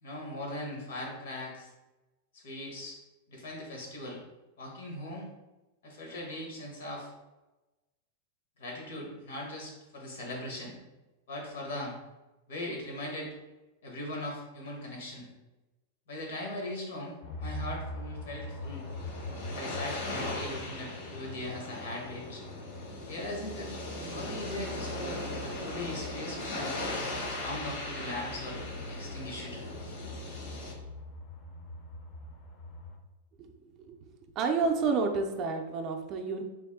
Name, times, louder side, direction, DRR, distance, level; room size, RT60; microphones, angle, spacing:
voice 1, 0.0-1.7 2.3-3.0 3.3-4.2 4.6-5.3 5.8-7.1 8.6-10.8 11.3-11.9 12.5-13.3 13.8-15.3 16.1-18.8 19.4-22.4 23.1-26.7 27.4-29.7, left 1 dB, 80° left, -1 dB, 1.3 m, -40 dB
sound 1, 17.2-33.0, left 2 dB, 35° left, 0.5 m, -43 dB
sound 2, 18.5-30.7, left 1 dB, 65° left, 1.0 m, -39 dB
voice 2, 33.4-34.1 34.4-36.4, right 4 dB, 30° right, 3 dB, 0.4 m, -30 dB
3.4 x 2.6 x 3.6 m, 1.1 s
supercardioid pair, 165°, 0 cm